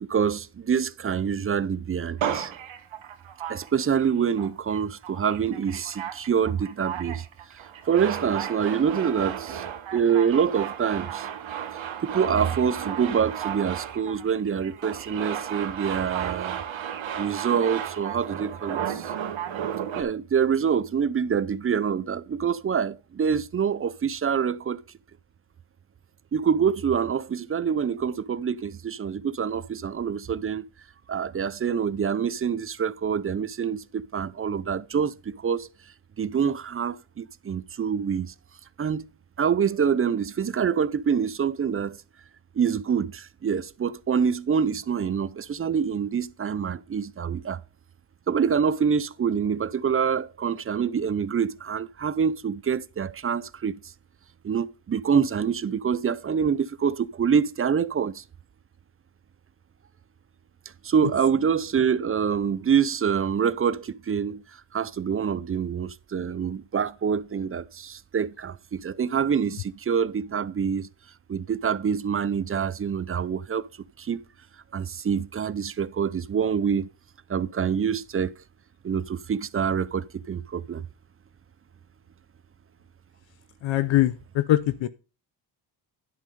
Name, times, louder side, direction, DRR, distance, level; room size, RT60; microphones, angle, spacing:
voice 1, 0.0-2.5 3.5-7.2 7.5-9.7 9.9-11.3 12.0-16.6 17.2-19.1 19.9-24.8 26.3-30.6 31.1-35.7 36.2-38.3 38.8-39.0 39.4-42.0 42.6-47.6 48.3-53.7 54.4-58.2 60.8-64.4 64.7-70.9 71.3-73.7 74.0-74.2 74.7-76.9 77.3-78.3 78.8-80.9, right 7 dB, 30° right, 0.5 m, -26 dB
Male speech man speaking, 2.2-4.1 4.4-4.8 5.0-20.0, right 9 dB, 90° right, 1.5 m, -34 dB
voice 2, 83.6-84.9, left 14 dB, 80° left, 0.7 m, -23 dB
11.0 x 5.5 x 5.2 m
cardioid pair, 85°, 45 cm